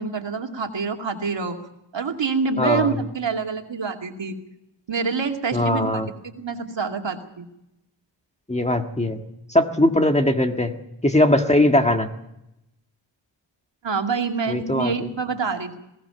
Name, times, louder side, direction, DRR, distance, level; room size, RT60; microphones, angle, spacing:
voice 1, 0.0-1.6 1.9-4.4 4.9-7.5 13.8-15.8, right 5 dB, 65° right, 3 dB, 2.5 m, -26 dB
voice 2, 2.6-3.0 5.5-6.1 8.5-9.2 9.5-10.7 11.0-12.1 14.5-15.1, left 1 dB, 15° left, 5 dB, 1.6 m, -20 dB
21.0 x 18.5 x 7.0 m, 0.85 s
wide cardioid pair, 120°, 47 cm